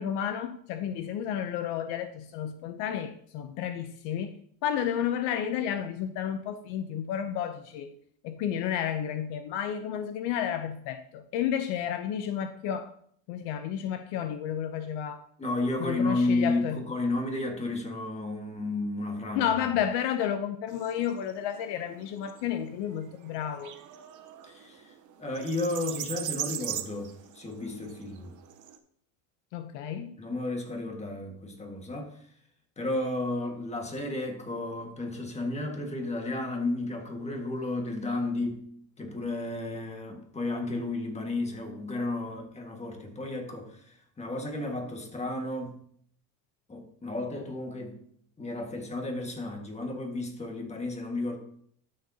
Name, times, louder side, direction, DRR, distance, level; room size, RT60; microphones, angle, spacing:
voice 1, 0.0-4.3 4.6-7.9 8.2-12.9 13.3-15.2 15.8-16.8 19.3-23.7 29.5-30.1, left 9 dB, 65° left, 0.8 m, -31 dB
voice 2, 15.4-19.5 24.4-24.9 25.2-28.3 30.2-32.2 32.8-38.6 39.0-45.8 46.7-48.0 48.4-51.4, left 2 dB, 15° left, 1.7 m, -32 dB
sound 1, 20.7-28.8, right 11 dB, 40° right, 0.9 m, -40 dB
12.5 x 6.6 x 2.8 m
supercardioid pair, 125°, 47 cm